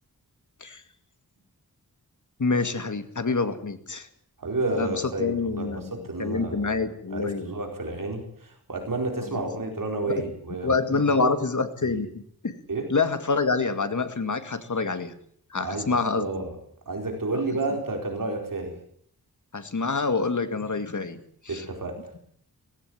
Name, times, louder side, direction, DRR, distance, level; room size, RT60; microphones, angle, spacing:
voice 1, 2.4-4.1 4.7-5.9 6.2-7.5 9.2-9.4 10.1-10.2 10.6-12.6 12.9-15.1 15.5-16.3 19.5-21.6, left 4 dB, 50° left, 9 dB, 2.2 m, -27 dB
voice 2, 4.4-11.3 11.8-11.9 12.7-12.9 15.6-16.5 16.9-18.8 21.5-22.1, right 2 dB, 60° right, 3 dB, 4.5 m, -31 dB
18.5 x 16.5 x 9.3 m, 0.64 s
wide cardioid pair, 85°, 37 cm